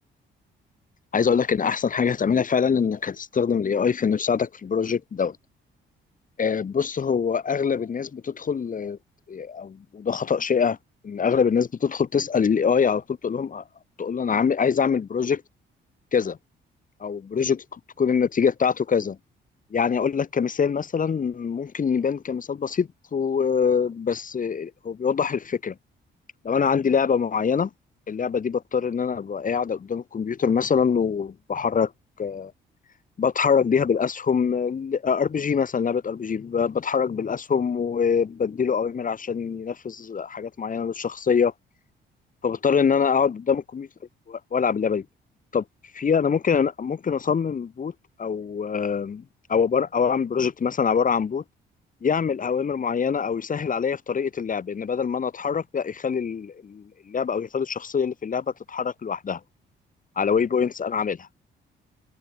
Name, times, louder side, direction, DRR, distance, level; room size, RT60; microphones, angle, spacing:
voice 1, 1.1-5.4 6.4-9.0 9.3-10.8 11.0-13.6 14.0-15.4 16.1-16.4 17.0-17.6 18.0-19.2 19.7-25.7 26.4-27.7 28.1-31.9 32.2-32.5 33.2-41.5 42.4-43.9 44.3-45.0 45.5-45.6 45.9-47.9 48.2-49.2 49.5-51.4 52.0-59.4 60.2-61.3, left 6 dB, 40° left, 2.9 m, -24 dB
cardioid pair, 90°, 20 cm